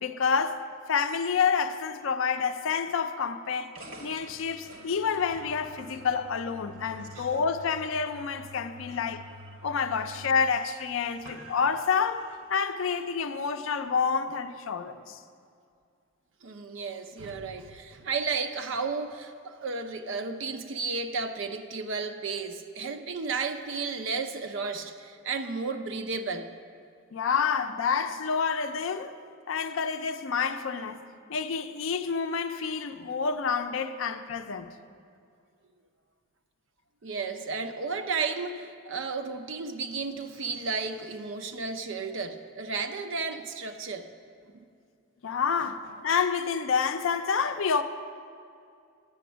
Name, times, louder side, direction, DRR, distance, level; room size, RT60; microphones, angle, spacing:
voice 1, 0.0-3.7 4.0-9.3 9.6-15.2 27.1-29.1 29.5-31.0 31.3-34.8 45.2-47.8, left 6 dB, 70° left, 0.4 m, -28 dB
sound 1, 3.7-12.5, equal, 85° right, 1.1 m, -48 dB
voice 2, 16.4-26.5 37.0-44.1 44.5-44.6 45.6-45.7, right 4 dB, 60° right, 0.6 m, -33 dB
9.3 x 7.8 x 6.1 m
head